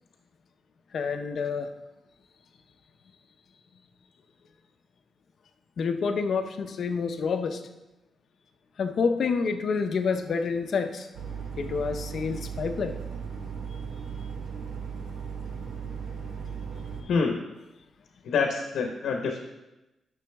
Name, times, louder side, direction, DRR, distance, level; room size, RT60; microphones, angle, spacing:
voice 1, 0.9-1.7 5.8-7.6 8.8-11.1 11.6-13.0, left 5 dB, 50° left, 7 dB, 0.6 m, -28 dB
sound 1, 11.1-17.0, right 6 dB, 80° right, 1.2 m, -36 dB
voice 2, 17.1-17.4 18.2-19.4, left 5 dB, 85° left, 2 dB, 0.9 m, -26 dB
9.8 x 6.2 x 3.5 m, 0.99 s
wide cardioid pair, 175°, 0 cm